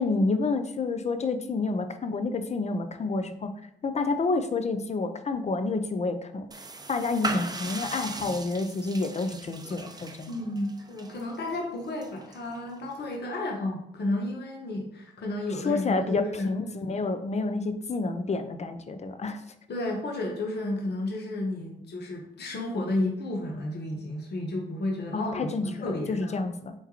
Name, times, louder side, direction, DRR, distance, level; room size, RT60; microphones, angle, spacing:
voice 1, 0.0-3.5 3.8-6.5 6.9-10.4 15.6-19.4 25.1-26.7, left 3 dB, 30° left, 9 dB, 0.6 m, -29 dB
sound 1, 6.5-13.2, right 3 dB, 20° right, 0.6 m, -39 dB
voice 2, 10.3-16.5 19.7-26.4, left 2 dB, 55° left, 0 dB, 1.0 m, -32 dB
4.5 x 3.5 x 2.9 m, 0.77 s
hypercardioid pair, 50°, 21 cm